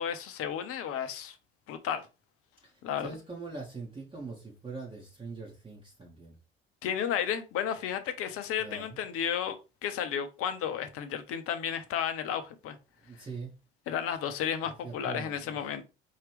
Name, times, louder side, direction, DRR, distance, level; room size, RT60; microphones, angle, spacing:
voice 1, 0.0-1.3 1.7-2.1 2.8-3.1 6.8-9.6 9.8-12.8 13.9-15.8, left 8 dB, 50° left, 0.8 m, -33 dB
voice 2, 2.6-6.4 8.6-9.0 13.0-13.5 14.6-15.6, right 4 dB, 20° right, 1.3 m, -43 dB
4.6 x 2.9 x 3.3 m
figure-of-eight pair, 55°, 30 cm